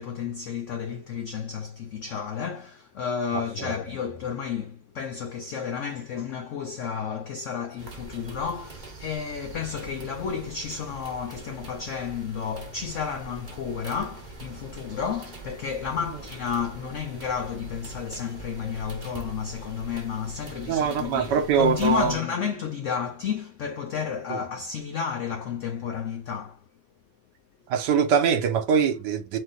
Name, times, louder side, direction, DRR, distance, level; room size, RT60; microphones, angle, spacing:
voice 1, 0.0-26.6, left 7 dB, 80° left, 0.6 m, -31 dB
voice 2, 3.3-3.7 20.7-22.2 24.3-24.4 27.7-29.4, right 7 dB, 75° right, 1.4 m, -23 dB
sound 1, 7.8-22.2, right 3 dB, 35° right, 0.9 m, -43 dB
3.8 x 3.1 x 3.8 m
omnidirectional pair, 1.9 m